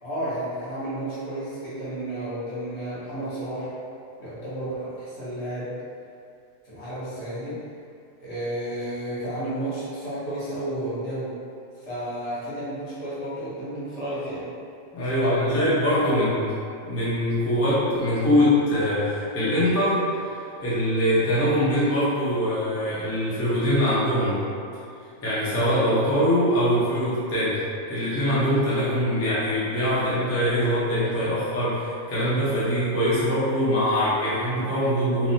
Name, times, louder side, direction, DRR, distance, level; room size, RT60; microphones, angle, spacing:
voice 1, 0.0-3.7 4.2-5.7 6.6-7.6 8.2-11.4 11.8-14.5 15.1-16.2, right 1 dB, 65° left, -11 dB, 1.2 m, -32 dB
voice 2, 14.9-16.5 16.8-24.4 25.2-27.6 27.9-35.3, equal, 20° left, -11 dB, 0.4 m, -23 dB
3.1 x 2.0 x 2.6 m, 2.5 s
omnidirectional pair, 1.4 m